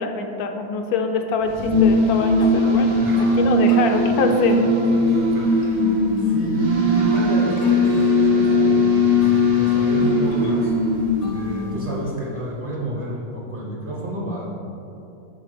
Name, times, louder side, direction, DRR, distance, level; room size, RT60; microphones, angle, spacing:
voice 1, 0.0-2.9 3.2-4.7, left 5 dB, 80° left, 5 dB, 1.1 m, -23 dB
sound 1, 1.4-11.9, left 1 dB, 60° right, 1.3 m, -19 dB
sound 2, 2.4-12.1, left 2 dB, 60° left, 0.8 m, -35 dB
voice 2, 3.0-3.4 4.9-10.7 11.0-11.1 11.3-14.5, right 1 dB, 30° right, -5 dB, 0.7 m, -30 dB
6.1 x 4.0 x 4.9 m, 2.7 s
omnidirectional pair, 1.6 m